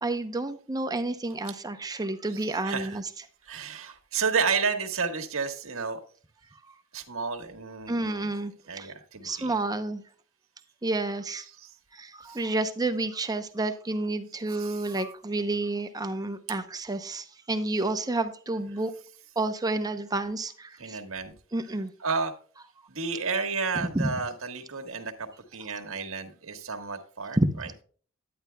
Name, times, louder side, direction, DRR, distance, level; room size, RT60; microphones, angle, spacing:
voice 1, 0.0-3.0 3.9-4.0 6.7-6.8 7.9-8.9 9.2-10.0 10.8-11.5 11.9-18.9 19.4-21.0 21.5-21.9 23.9-24.1 27.4-27.7, right 2 dB, 20° right, 8 dB, 0.7 m, -30 dB
voice 2, 2.3-3.0 3.4-6.0 6.9-8.3 8.7-9.6 11.4-11.7 12.2-12.4 14.5-14.9 16.5-16.6 18.5-18.8 20.8-21.3 21.6-21.7 22.0-22.3 22.9-27.7, right 5 dB, 70° right, 5 dB, 1.5 m, -32 dB
11.0 x 9.4 x 2.2 m, 0.44 s
head